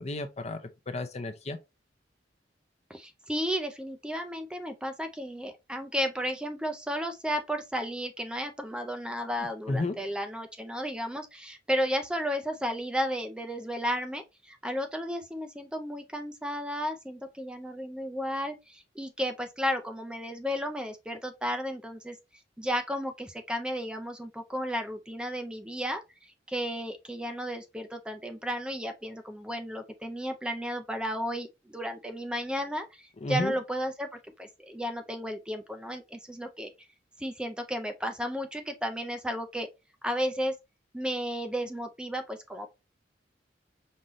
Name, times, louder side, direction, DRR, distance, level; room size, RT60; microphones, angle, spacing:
voice 1, 0.0-1.6 9.7-10.0 33.2-33.5, left 2 dB, 35° left, 0.6 m, -32 dB
voice 2, 2.9-22.2 22.6-26.0 26.5-34.1 34.4-36.7 37.2-39.7 40.0-40.5 40.9-42.7, equal, 5° right, 0.4 m, -33 dB
5.4 x 2.6 x 3.0 m
head